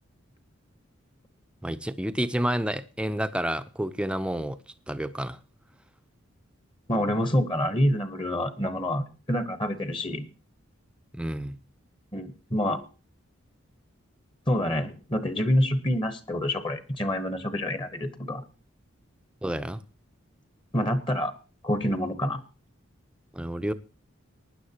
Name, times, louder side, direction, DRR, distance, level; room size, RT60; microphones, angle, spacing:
voice 1, 1.6-4.6 4.9-5.4 11.1-11.6 19.4-19.8 23.3-23.7, right 1 dB, 5° right, 0.6 m, -29 dB
voice 2, 6.9-10.3 12.1-12.8 14.5-18.4 20.7-21.3 21.6-22.4, left 1 dB, 25° left, 1.1 m, -27 dB
19.5 x 10.0 x 2.9 m
head